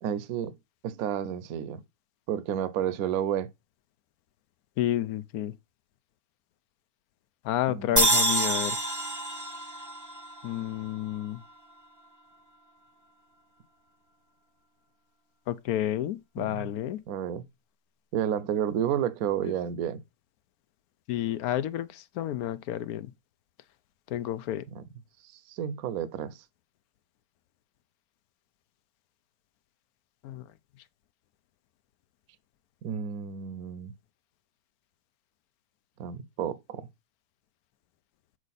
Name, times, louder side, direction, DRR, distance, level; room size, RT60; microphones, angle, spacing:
voice 1, 0.0-0.5 0.8-1.8 2.3-3.5 7.7-8.1 16.4-16.7 17.1-17.4 18.1-20.0 24.7-24.8 25.2-26.4 32.8-33.9 36.0-36.9, right 9 dB, 65° right, 1.1 m, -31 dB
voice 2, 4.8-5.5 7.4-8.8 10.4-11.4 15.5-17.0 19.4-19.5 21.1-23.1 24.1-24.6 30.2-30.4, left 12 dB, 70° left, 1.0 m, -30 dB
sound 1, 8.0-11.2, right 1 dB, 15° right, 0.9 m, -27 dB
7.4 x 4.9 x 4.0 m
omnidirectional pair, 1.8 m